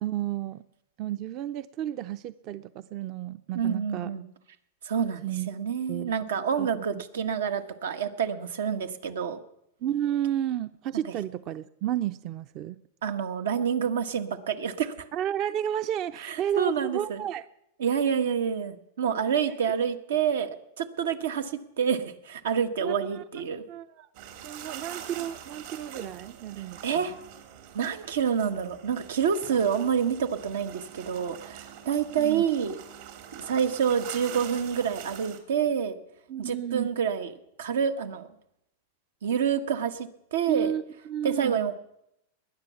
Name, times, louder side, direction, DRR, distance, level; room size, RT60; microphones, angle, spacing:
voice 1, 0.0-0.6 1.0-4.1 5.2-5.5 5.9-6.1 6.6-6.8 9.8-12.8 15.1-17.4 22.8-23.2 23.7-24.1 24.4-27.0 32.2-32.5 36.3-36.9 40.5-41.6, right 11 dB, 40° right, 14 dB, 0.5 m, -32 dB
voice 2, 3.5-4.2 4.8-9.4 13.0-15.1 16.2-17.2 17.8-23.6 26.8-27.1 27.7-32.8 33.4-36.0 36.4-38.3 39.2-40.7 41.2-41.8, right 7 dB, 90° right, 9 dB, 1.6 m, -28 dB
sound 1, 24.1-35.4, right 9 dB, 60° right, 3.2 m, -44 dB
20.0 x 9.9 x 7.1 m, 0.79 s
supercardioid pair, 140°, 0 cm